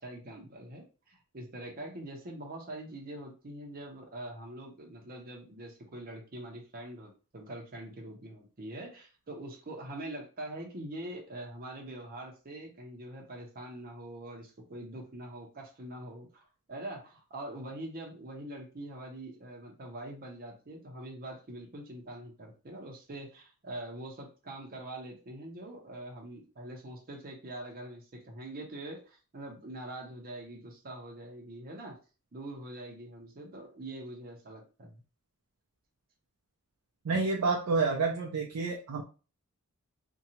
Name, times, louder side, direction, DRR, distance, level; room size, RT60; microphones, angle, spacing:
voice 1, 0.0-16.4 16.7-32.0 32.3-35.0, right 1 dB, 40° right, 0 dB, 0.6 m, -44 dB
voice 2, 37.0-39.0, right 4 dB, 85° right, -1 dB, 0.5 m, -29 dB
2.7 x 2.2 x 2.8 m, 0.34 s
head